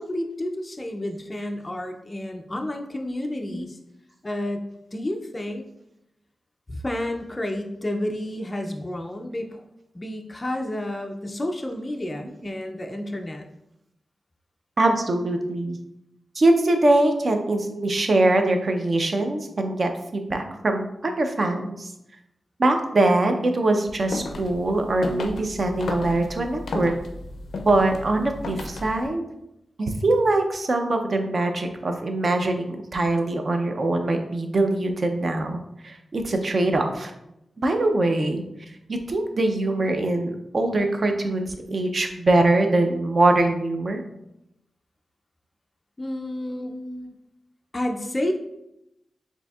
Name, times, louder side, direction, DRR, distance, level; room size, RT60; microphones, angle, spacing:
voice 1, 0.0-3.8 4.2-5.7 6.7-9.6 9.9-13.4 46.0-46.7 47.7-48.3, left 1 dB, 20° left, 3 dB, 0.3 m, -30 dB
voice 2, 14.8-15.8 16.4-21.9 22.6-26.9 27.6-29.3 29.8-37.1 37.6-38.4 38.9-44.0 46.5-47.1, right 2 dB, 40° right, 5 dB, 0.5 m, -23 dB
sound 1, 23.9-29.1, left 2 dB, 90° left, 0.4 m, -34 dB
6.6 x 2.7 x 2.3 m, 0.85 s
wide cardioid pair, 170°, 0 cm